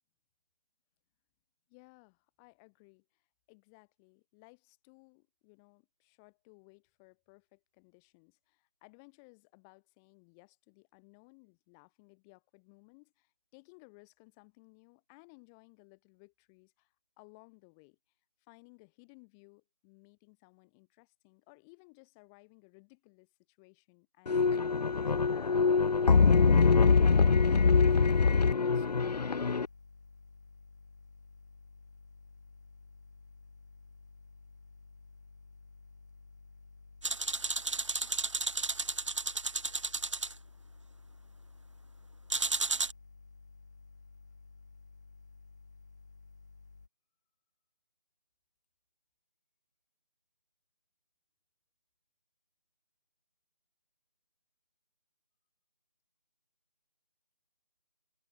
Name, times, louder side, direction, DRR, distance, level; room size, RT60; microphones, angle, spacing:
voice 1, 1.7-18.0 18.4-26.3 26.7-29.5, left 32 dB, 5° left, 1.0 m, -60 dB
sound 1, 24.3-29.7, left 5 dB, 75° left, 0.4 m, -24 dB
sound 2, 28.6-46.9, left 4 dB, 25° left, 1.1 m, -55 dB
sound 3, 37.0-40.3 42.3-42.9, right 3 dB, 45° right, 0.8 m, -33 dB
figure-of-eight pair, 165°, 21 cm